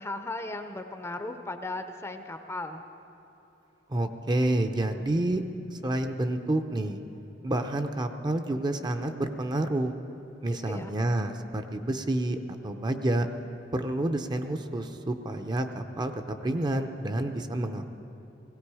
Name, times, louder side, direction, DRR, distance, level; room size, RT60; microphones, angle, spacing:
voice 1, 0.0-2.8 10.5-10.9, left 2 dB, 15° left, 7 dB, 0.6 m, -36 dB
voice 2, 3.9-5.4 5.8-7.0 7.4-9.9 10.4-12.4 12.6-13.3 13.7-17.9, right 1 dB, 25° right, 6 dB, 0.6 m, -29 dB
18.0 x 16.5 x 4.8 m, 2.9 s
head